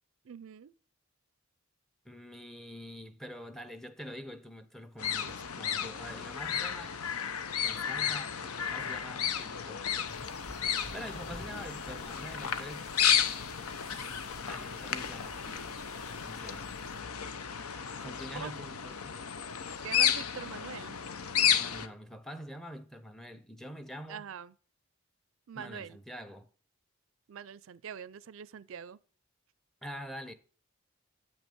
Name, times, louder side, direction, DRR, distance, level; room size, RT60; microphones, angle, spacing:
voice 1, 0.2-0.7 18.0-18.5 19.8-21.0 24.1-24.5 25.5-26.0 27.3-29.0, right 7 dB, 65° right, 0.4 m, -44 dB
voice 2, 2.0-7.0 7.6-9.8 10.9-12.9 13.3-14.0 14.5-15.7 16.2-16.7 18.0-19.2 21.5-24.2 25.6-26.5 29.8-30.3, equal, ahead, 0.6 m, -46 dB
sound 1, 5.0-21.9, left 8 dB, 90° left, 0.8 m, -33 dB
sound 2, 10.1-17.0, left 1 dB, 30° left, 2.4 m, -50 dB
8.3 x 6.2 x 6.7 m
head